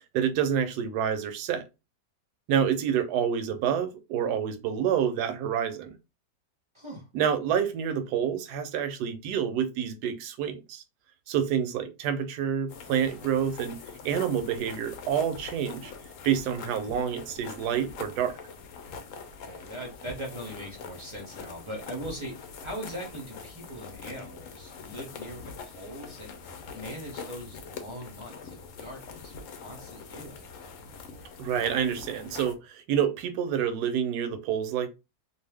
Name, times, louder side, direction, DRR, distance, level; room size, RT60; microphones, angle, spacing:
voice 1, 0.0-1.6 2.5-6.0 7.1-10.8 11.3-15.9 16.2-18.3 31.4-34.9, right 8 dB, 80° right, 1.1 m, -28 dB
voice 2, 6.7-7.1 19.4-30.5, equal, 35° right, 0.5 m, -41 dB
sound 1, 12.7-32.5, left 5 dB, 65° left, 0.8 m, -44 dB
2.6 x 2.3 x 3.4 m
omnidirectional pair, 1.8 m